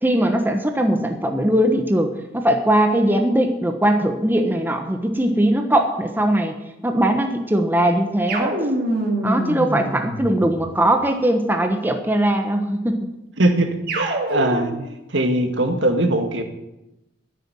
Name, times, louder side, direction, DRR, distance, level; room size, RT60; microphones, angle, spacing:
voice 1, 0.0-6.6 6.8-8.6 9.2-13.1, right 1 dB, 10° right, 5 dB, 1.2 m, -20 dB
sound 1, 8.3-10.8 13.9-14.9, right 1 dB, 55° right, 2.8 m, -25 dB
voice 2, 13.4-14.7 15.1-16.4, right 1 dB, 85° right, 5 dB, 2.0 m, -21 dB
10.0 x 9.6 x 9.2 m, 0.93 s
head